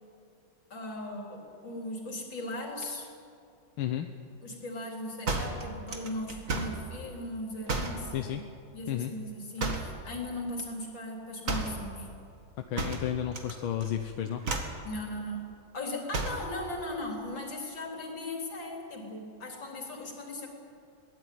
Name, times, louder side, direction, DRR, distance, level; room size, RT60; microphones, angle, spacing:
voice 1, 0.7-3.1 4.4-8.4 8.7-12.1 14.8-20.5, left 1 dB, 65° left, 1 dB, 4.3 m, -38 dB
sound 1, 5.3-6.8 7.7-8.1 9.6-10.0 11.5-11.8 12.8-13.5 13.8-14.1 14.4-14.8 16.1-16.5, right 3 dB, 40° right, 2.3 m, -32 dB
voice 2, 12.7-14.4, left 10 dB, 90° left, 6 dB, 1.8 m, -32 dB
22.5 x 17.0 x 9.3 m, 2.5 s
omnidirectional pair, 2.2 m